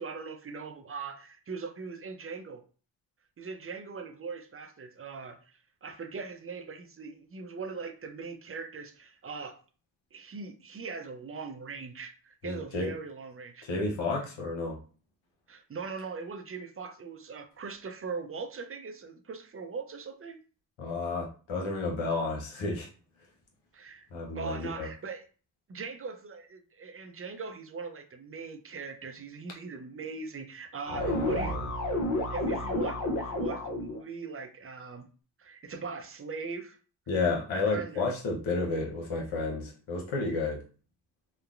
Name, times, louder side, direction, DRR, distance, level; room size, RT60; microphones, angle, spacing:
voice 1, 0.0-2.6 3.4-9.6 10.1-13.7 15.5-20.4 23.7-24.1 24.3-25.2 25.7-31.6 32.2-35.1 35.4-36.8 37.7-38.0, right 4 dB, 30° right, 7 dB, 0.5 m, -40 dB
voice 2, 12.4-12.9 13.6-14.8 20.8-22.9 24.1-24.9 30.9-31.7 37.1-40.6, left 3 dB, 85° left, -1 dB, 0.9 m, -31 dB
sound 1, 30.9-34.0, left 1 dB, 40° left, 0.8 m, -30 dB
2.9 x 2.1 x 2.5 m, 0.38 s
supercardioid pair, 45°, 46 cm